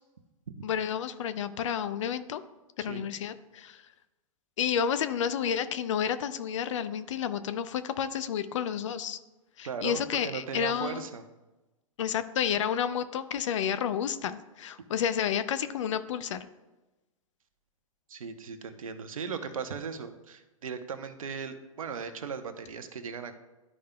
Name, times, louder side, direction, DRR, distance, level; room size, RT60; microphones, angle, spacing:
voice 1, 0.6-2.4 2.8-3.8 4.6-9.2 9.6-11.1 12.0-16.5, left 8 dB, 60° left, 12 dB, 0.6 m, -30 dB
voice 2, 9.6-11.2 18.1-23.4, right 6 dB, 75° right, 9 dB, 0.9 m, -38 dB
12.5 x 5.0 x 2.2 m, 1.1 s
figure-of-eight pair, 110°, 18 cm